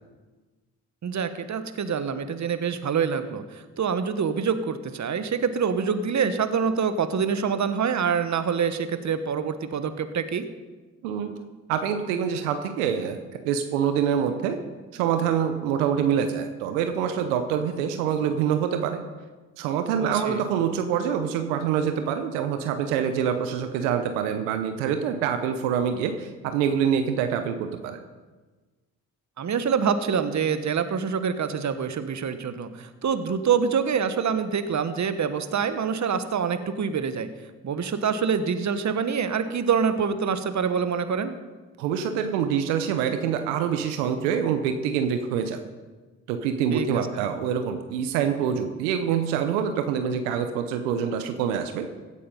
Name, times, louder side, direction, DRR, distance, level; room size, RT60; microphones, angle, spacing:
voice 1, 1.0-10.4 20.1-20.4 29.4-37.3 37.6-41.4 46.7-47.0, right 6 dB, 50° right, 10 dB, 1.3 m, -26 dB
voice 2, 11.0-11.4 11.7-13.2 13.4-14.6 14.9-19.0 19.6-28.0 41.8-45.6 46.3-51.9, right 8 dB, 90° right, 7 dB, 0.9 m, -25 dB
16.0 x 8.5 x 5.4 m, 1.3 s
hypercardioid pair, 45°, 37 cm